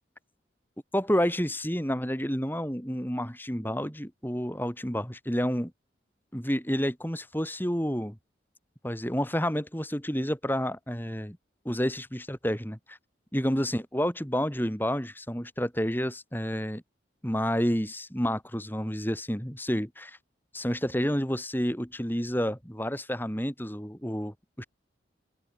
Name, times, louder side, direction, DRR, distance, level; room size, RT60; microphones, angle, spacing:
voice 1, 0.9-5.7 6.3-8.2 8.8-11.4 11.6-13.0 13.3-16.8 17.2-20.2 20.5-24.6, equal, 10° left, 7.7 m, -29 dB
head